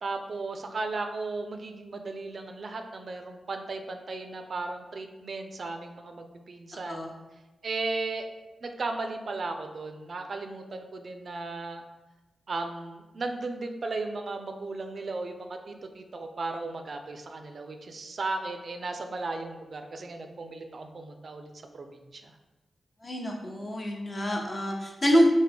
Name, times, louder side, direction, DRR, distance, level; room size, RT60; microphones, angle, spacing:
voice 1, 0.0-7.1 7.6-8.3 8.6-11.8 12.5-21.9 22.1-22.3, right 3 dB, 60° right, 5 dB, 0.3 m, -35 dB
voice 2, 23.0-25.3, equal, 40° left, 0 dB, 0.7 m, -26 dB
3.2 x 2.1 x 3.4 m, 1.1 s
cardioid pair, 45°, 0 cm